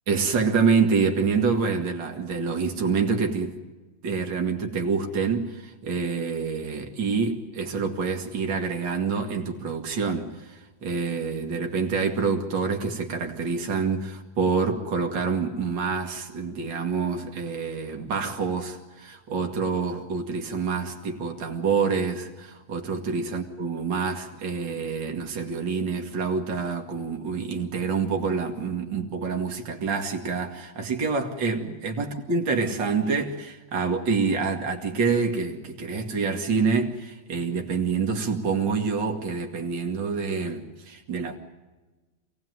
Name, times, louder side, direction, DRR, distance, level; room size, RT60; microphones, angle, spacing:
voice 1, 0.1-3.6 4.0-41.4, right 5 dB, 60° right, 2.5 m, -27 dB
26.0 x 18.0 x 9.4 m
omnidirectional pair, 2.2 m